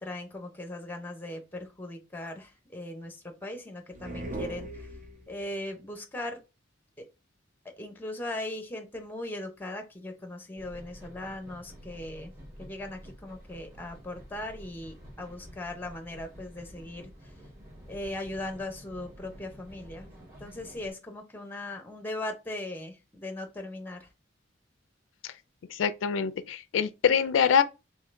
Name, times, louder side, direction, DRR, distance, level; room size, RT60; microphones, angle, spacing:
voice 1, 0.0-4.9 5.3-6.4 7.0-7.1 7.6-12.3 12.6-17.3 17.9-20.1 20.4-24.1, left 1 dB, 10° left, 0.7 m, -39 dB
sound 1, 3.9-5.5, right 2 dB, 45° right, 0.8 m, -39 dB
sound 2, 10.6-20.9, equal, 20° right, 2.0 m, -49 dB
voice 2, 25.7-27.6, left 7 dB, 85° left, 0.4 m, -25 dB
3.7 x 3.2 x 3.2 m
head